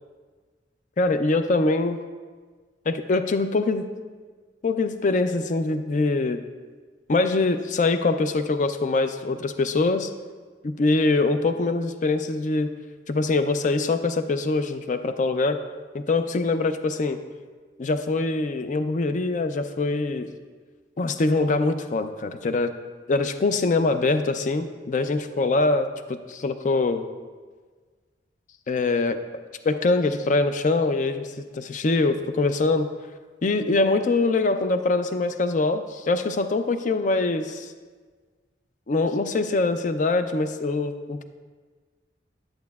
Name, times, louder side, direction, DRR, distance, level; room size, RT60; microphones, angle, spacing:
voice 1, 1.0-2.0 2.9-3.8 4.6-6.4 7.1-10.1 10.6-12.7 13.1-15.6 15.9-17.2 17.8-20.3 21.0-22.7 23.1-27.0 28.7-29.2 29.6-32.9 33.4-37.7 38.9-41.2, left 3 dB, 45° left, 9 dB, 0.4 m, -23 dB
10.5 x 7.8 x 2.3 m, 1.5 s
head